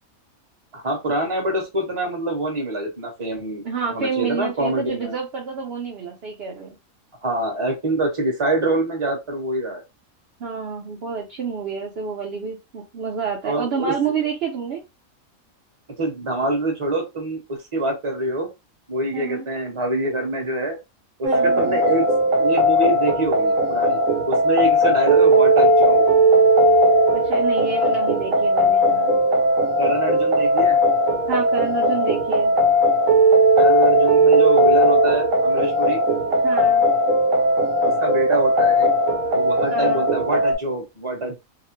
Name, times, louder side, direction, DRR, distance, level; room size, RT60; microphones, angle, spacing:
voice 1, 0.7-5.1 7.2-9.8 13.4-13.9 16.0-18.5 18.9-20.8 21.2-22.0 22.3-26.0 29.8-30.8 33.6-36.0 38.0-38.9 39.3-41.4, right 2 dB, 25° right, 0 dB, 1.0 m, -25 dB
voice 2, 3.6-6.8 10.4-14.8 19.1-19.5 21.2-21.8 27.1-29.2 31.3-32.5 36.4-36.8 39.7-40.0, right 6 dB, 55° right, 0 dB, 0.8 m, -28 dB
sound 1, 21.2-40.6, right 1 dB, 75° right, 1.0 m, -17 dB
2.8 x 2.0 x 3.0 m, 0.23 s
omnidirectional pair, 1.5 m